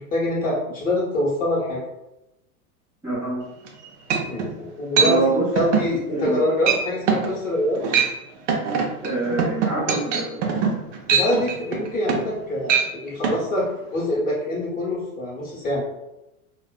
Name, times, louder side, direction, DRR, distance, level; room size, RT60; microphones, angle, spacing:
voice 1, 0.0-1.8 4.2-7.8 11.1-15.9, left 1 dB, 20° left, -6 dB, 0.9 m, -25 dB
voice 2, 3.0-3.4 5.0-5.5 6.1-6.4 9.0-10.4, right 3 dB, 5° right, -11 dB, 0.7 m, -25 dB
sound 1, 3.6-3.7 4.1-4.5 5.0-5.1 5.6-5.9 6.2-6.4 6.7-6.8 7.1-7.3 7.7-8.1 8.5-12.4 12.6-12.9 13.2-13.4, right 6 dB, 55° right, 0.6 m, -22 dB
2.4 x 2.1 x 2.3 m, 0.93 s
hypercardioid pair, 120°, 44 cm